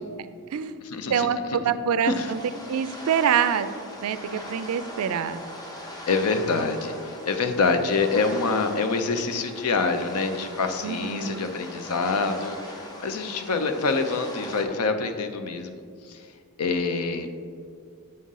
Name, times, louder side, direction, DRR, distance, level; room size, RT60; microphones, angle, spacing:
voice 1, 0.8-1.6 2.0-2.3 6.1-16.3 16.6-17.3, left 4 dB, 80° left, 8 dB, 0.6 m, -26 dB
voice 2, 1.6-2.4 2.7-3.7 4.0-5.4 10.8-11.5, right 8 dB, 70° right, 13 dB, 0.3 m, -25 dB
sound 1, 2.1-14.6, left 1 dB, 15° left, 0.7 m, -40 dB
7.5 x 5.5 x 3.7 m, 2.2 s
head